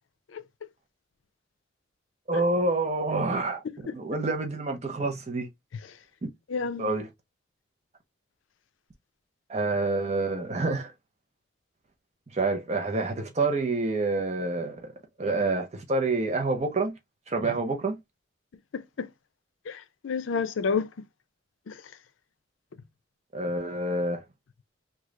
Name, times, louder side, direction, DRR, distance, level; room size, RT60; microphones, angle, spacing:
voice 1, 2.3-3.6 3.9-5.5 6.8-7.1 9.5-10.9 12.3-14.8 15.2-16.9 17.3-18.0 23.3-24.2, right 2 dB, 35° right, 0.6 m, -27 dB
voice 2, 6.5-6.9 18.7-19.1 19.7-20.9 21.7-21.8, left 5 dB, 80° left, 0.4 m, -30 dB
3.1 x 2.3 x 3.6 m
head